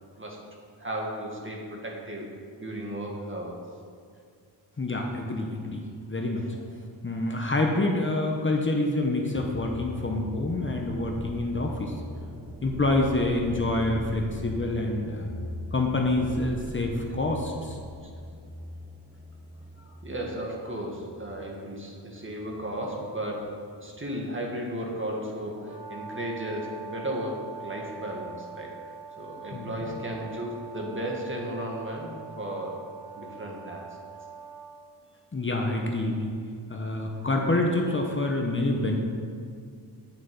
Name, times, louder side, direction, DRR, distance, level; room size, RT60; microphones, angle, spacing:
voice 1, 0.8-2.3 2.6-3.6 6.5-6.6 17.9-18.1 20.0-23.5 23.8-28.7 29.2-32.8 33.2-34.0, right 1 dB, 30° right, -1 dB, 1.8 m, -35 dB
voice 2, 4.8-6.5 7.0-11.9 12.6-15.3 15.7-17.8 29.5-29.9 35.3-36.4 36.7-39.0, left 2 dB, 30° left, 1 dB, 1.0 m, -27 dB
sound 1, 9.4-22.4 22.7-23.3, equal, 10° right, 0.8 m, -41 dB
Brass instrument, 25.6-34.7, right 5 dB, 70° right, 2.9 m, -43 dB
9.5 x 7.4 x 5.3 m, 2.2 s
wide cardioid pair, 100°, 42 cm